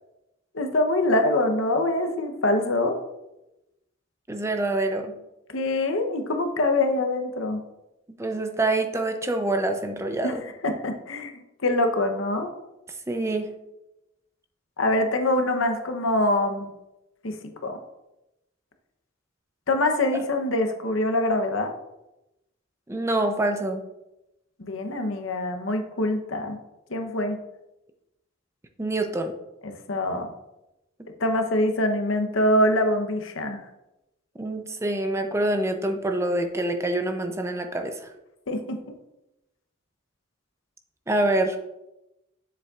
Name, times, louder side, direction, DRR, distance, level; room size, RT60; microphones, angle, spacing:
voice 1, 0.5-3.0 5.5-7.6 10.2-10.3 10.6-11.3 11.6-12.5 14.8-16.7 17.2-17.8 19.7-21.7 24.6-26.6 26.9-27.4 29.6-30.3 31.2-33.6 38.5-39.0, left 1 dB, 85° left, 5 dB, 0.9 m, -24 dB
voice 2, 4.3-5.2 8.2-10.4 13.1-13.5 22.9-23.8 28.8-29.3 34.4-38.1 41.1-41.6, right 2 dB, 15° right, 6 dB, 0.5 m, -26 dB
7.3 x 7.0 x 2.4 m, 0.93 s
head